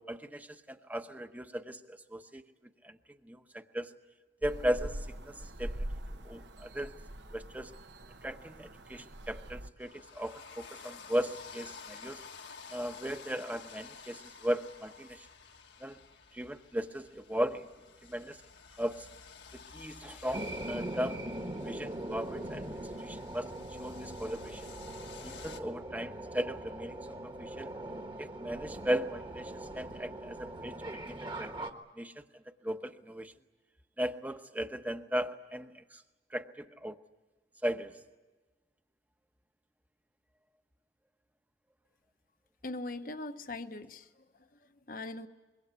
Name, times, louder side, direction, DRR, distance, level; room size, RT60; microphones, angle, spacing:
voice 1, 0.1-2.4 2.8-3.0 3.2-3.9 4.4-5.8 6.2-6.9 7.3-7.7 8.2-12.2 12.7-15.3 15.8-16.0 16.3-17.7 18.1-18.4 18.8-19.1 19.5-21.2 21.6-22.7 23.0-23.5 23.8-24.6 25.2-27.0 27.2-27.7 28.2-30.8 31.1-31.5 32.0-32.1 32.6-33.3 34.0-36.0 36.3-37.0 37.6-37.9, equal, 10° right, 8 dB, 0.9 m, -37 dB
sound 1, 4.4-9.7, right 1 dB, 75° right, 1.1 m, -43 dB
sound 2, 9.8-25.6, left 5 dB, 80° left, 1.6 m, -51 dB
sound 3, 20.3-31.7, right 1 dB, 25° right, 1.4 m, -41 dB
voice 2, 42.6-44.1 44.3-44.5 44.9-45.3, left 2 dB, 50° left, 9 dB, 1.0 m, -40 dB
25.0 x 22.5 x 8.2 m, 1.2 s
head